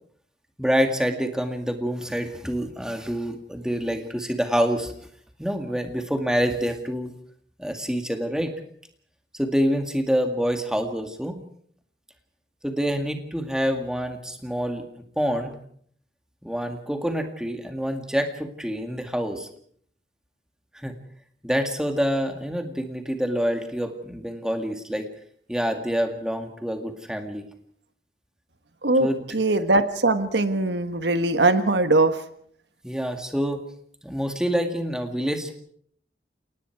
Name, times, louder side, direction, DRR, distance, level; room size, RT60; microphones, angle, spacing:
voice 1, 0.6-4.9 5.4-7.1 7.6-8.5 9.3-11.4 12.6-14.9 15.2-15.5 16.4-19.5 20.7-21.0 21.4-25.1 25.5-27.5 29.0-29.2 32.8-33.6 34.0-35.5, equal, 5° right, 5 dB, 2.1 m, -26 dB
voice 2, 29.3-32.1, right 2 dB, 85° right, 10 dB, 1.4 m, -21 dB
29.5 x 18.5 x 4.7 m, 0.62 s
head